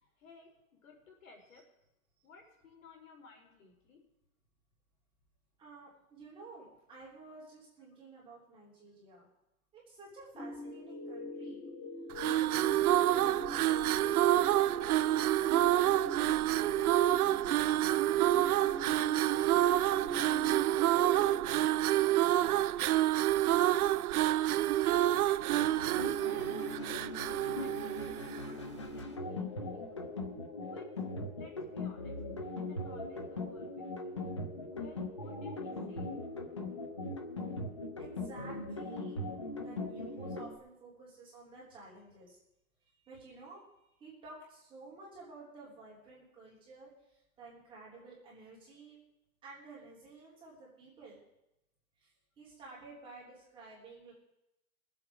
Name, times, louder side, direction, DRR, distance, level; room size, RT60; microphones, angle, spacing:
voice 1, 0.0-1.6 2.2-4.0 22.4-23.1 23.5-24.7 25.2-30.0 30.7-30.9 31.4-32.2 32.5-34.2 34.6-36.1, left 4 dB, 65° left, 0 dB, 4.3 m, -58 dB
voice 2, 5.6-9.3 9.7-11.6 12.2-18.0 18.5-21.3 38.0-39.2 39.6-42.4 42.8-49.0 49.4-51.2 52.0-52.1 52.4-54.1, right 3 dB, 10° right, -6 dB, 3.1 m, -53 dB
sound 1, 10.3-22.2, left 1 dB, 80° left, 4.6 m, -44 dB
sound 2, 12.1-28.6, right 13 dB, 85° right, 0.6 m, -28 dB
sound 3, 25.5-40.6, left 2 dB, 25° left, 0.4 m, -40 dB
21.0 x 7.8 x 4.8 m, 0.87 s
hypercardioid pair, 170°, 43 cm